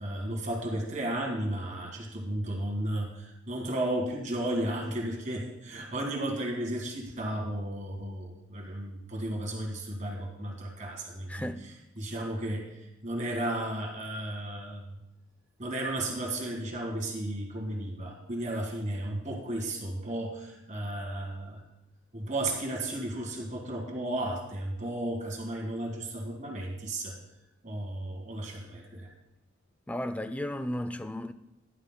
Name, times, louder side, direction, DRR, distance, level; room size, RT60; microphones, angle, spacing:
voice 1, 0.0-15.0 15.6-21.6 22.1-27.2 27.6-29.1, right 1 dB, 35° right, 1.9 m, -34 dB
voice 2, 11.3-11.6 29.9-31.3, left 1 dB, 5° left, 0.3 m, -34 dB
13.0 x 11.5 x 2.2 m
head